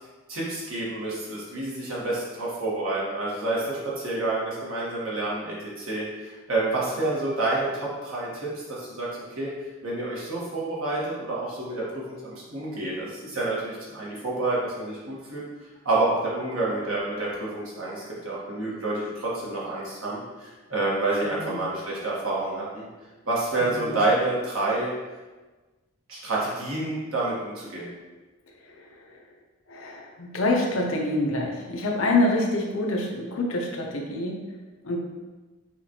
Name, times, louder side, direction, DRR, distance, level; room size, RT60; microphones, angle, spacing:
voice 1, 0.3-9.1 9.4-9.5 9.8-15.4 15.8-22.9 23.2-24.9 26.1-27.9, right 2 dB, 70° right, -6 dB, 1.3 m, -28 dB
voice 2, 21.2-21.6 23.6-24.0 28.5-29.2 29.7-34.6 34.8-35.0, left 2 dB, 65° left, 0 dB, 0.7 m, -27 dB
5.7 x 2.4 x 2.8 m, 1.2 s
head